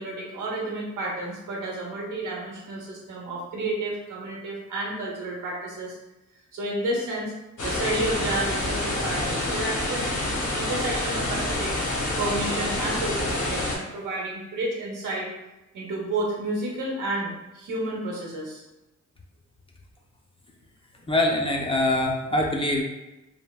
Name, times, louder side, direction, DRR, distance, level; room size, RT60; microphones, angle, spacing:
voice 1, 0.0-6.0 6.5-7.3 7.6-10.1 10.5-11.8 12.2-15.3 15.7-18.6, right 2 dB, 90° right, -3 dB, 0.9 m, -31 dB
sound 1, 7.6-13.8, left 1 dB, 75° left, 0.8 m, -27 dB
voice 2, 21.1-22.8, left 1 dB, 20° left, -1 dB, 0.3 m, -23 dB
3.3 x 2.1 x 2.3 m, 1.0 s
cardioid pair, 95°, 31 cm